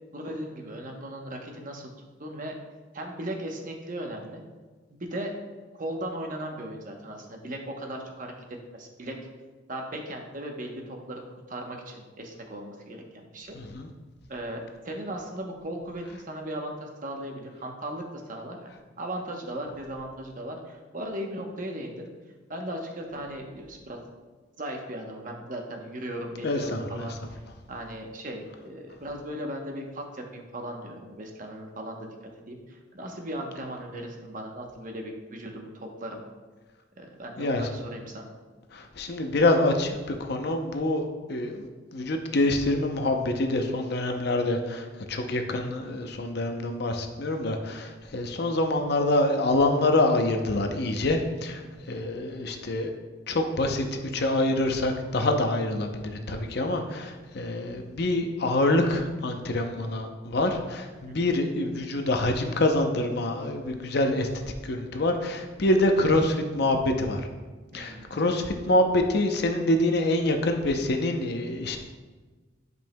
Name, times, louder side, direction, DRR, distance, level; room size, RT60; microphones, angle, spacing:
voice 1, 0.1-1.9 2.2-2.5 2.9-4.4 4.9-5.3 5.8-8.3 8.7-9.2 9.7-11.2 11.5-13.6 14.3-22.1 22.5-24.0 24.6-27.2 27.7-32.1 32.5-36.2 37.0-38.3 51.6-51.9 61.1-61.2 67.7-68.2, right 1 dB, 45° right, 2 dB, 0.9 m, -37 dB
voice 2, 13.5-13.9 26.4-27.1 37.4-37.7 38.7-51.6 51.9-52.9 53.3-64.3 64.6-67.2 67.7-71.8, left 1 dB, 55° left, 5 dB, 0.6 m, -26 dB
10.5 x 5.3 x 2.2 m, 1.3 s
head